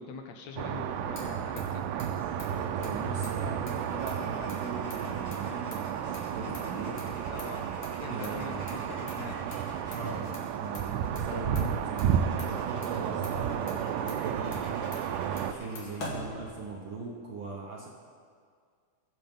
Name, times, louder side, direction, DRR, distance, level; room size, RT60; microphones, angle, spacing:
voice 1, 0.0-1.9 7.3-7.7 8.0-9.4, left 5 dB, 75° left, 5 dB, 1.6 m, -43 dB
sound 1, 0.6-15.5, right 9 dB, 90° right, 2.1 m, -32 dB
Motor vehicle (road), 0.8-17.0, left 1 dB, 45° left, 2.1 m, -47 dB
sound 2, 2.1-15.9, equal, 15° left, 2.3 m, -49 dB
voice 2, 2.5-7.0 8.1-8.7 9.9-14.6 15.2-17.9, right 3 dB, 70° right, -2 dB, 1.1 m, -40 dB
18.0 x 7.6 x 3.6 m, 2.1 s
omnidirectional pair, 3.6 m